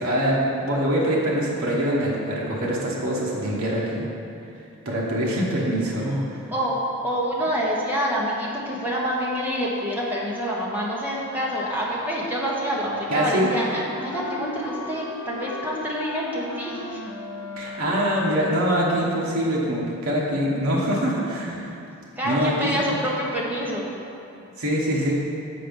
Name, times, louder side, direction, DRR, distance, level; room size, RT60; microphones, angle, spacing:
voice 1, 0.0-4.1 4.8-6.4 13.1-13.5 17.6-21.7 22.2-22.7 24.3-25.1, equal, 70° right, -4 dB, 1.1 m, -24 dB
voice 2, 6.5-17.0 22.2-23.9, equal, 10° right, -5 dB, 1.0 m, -27 dB
Wind instrument woodwind instrument, 12.7-18.2, left 2 dB, 65° left, 0.7 m, -36 dB
7.6 x 4.7 x 5.2 m, 2.7 s
head